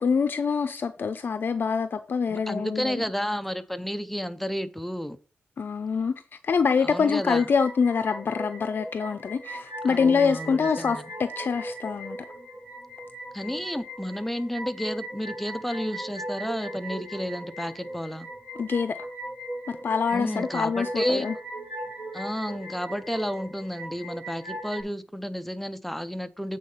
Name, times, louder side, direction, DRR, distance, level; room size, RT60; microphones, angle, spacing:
voice 1, 0.0-3.0 5.6-6.1 6.4-12.2 18.6-19.0 19.8-21.3, left 5 dB, 60° left, 0.5 m, -25 dB
voice 2, 2.3-5.2 6.8-7.5 9.8-11.1 13.3-18.3 20.1-21.3 22.1-26.6, equal, 5° left, 0.6 m, -31 dB
sound 1, 7.1-24.8, right 1 dB, 30° right, 3.7 m, -39 dB
8.2 x 4.2 x 5.4 m
wide cardioid pair, 95°, 4 cm